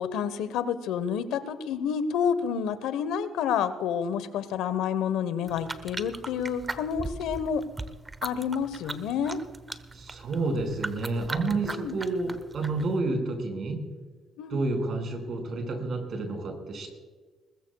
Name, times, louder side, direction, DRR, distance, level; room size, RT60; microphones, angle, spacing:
voice 1, 0.0-7.6 8.2-9.4 11.6-12.0 14.4-14.6, left 7 dB, 80° left, 13 dB, 1.1 m, -29 dB
sound 1, 5.5-13.0, right 2 dB, 25° right, 1.1 m, -39 dB
voice 2, 9.9-13.8 14.5-16.9, right 3 dB, 55° right, 3 dB, 5.6 m, -30 dB
21.0 x 21.0 x 2.4 m, 1.3 s
supercardioid pair, 75°, 0 cm